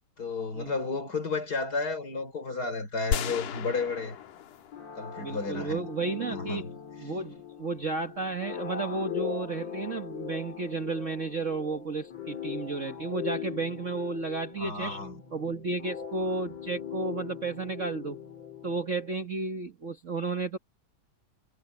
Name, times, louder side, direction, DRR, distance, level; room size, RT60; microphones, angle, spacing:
voice 1, 0.2-4.2 5.0-5.9 6.3-6.7 14.6-15.2, left 4 dB, 30° left, 4.7 m, -32 dB
sound 1, 3.1-5.4, left 9 dB, 90° left, 3.1 m, -35 dB
sound 2, 4.7-19.3, left 9 dB, 55° left, 4.9 m, -40 dB
voice 2, 5.2-6.7 7.0-15.0 15.3-18.2 18.6-20.6, right 3 dB, 70° right, 0.7 m, -33 dB
omnidirectional pair, 3.5 m